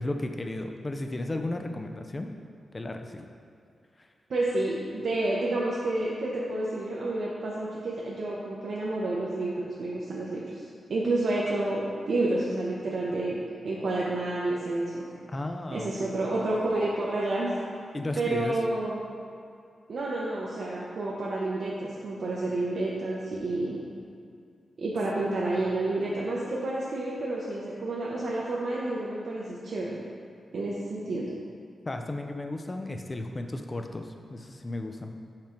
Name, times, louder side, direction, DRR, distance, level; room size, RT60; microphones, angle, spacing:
voice 1, 0.0-2.3 2.7-3.3 4.0-4.1 15.3-16.2 17.9-18.6 31.9-35.1, left 2 dB, 25° left, 5 dB, 0.4 m, -34 dB
voice 2, 4.3-15.0 15.7-17.5 18.1-19.0 19.9-23.8 24.8-30.0 30.5-31.3, right 2 dB, 60° right, -6 dB, 0.8 m, -30 dB
5.9 x 5.0 x 4.4 m, 2.4 s
wide cardioid pair, 140°, 0 cm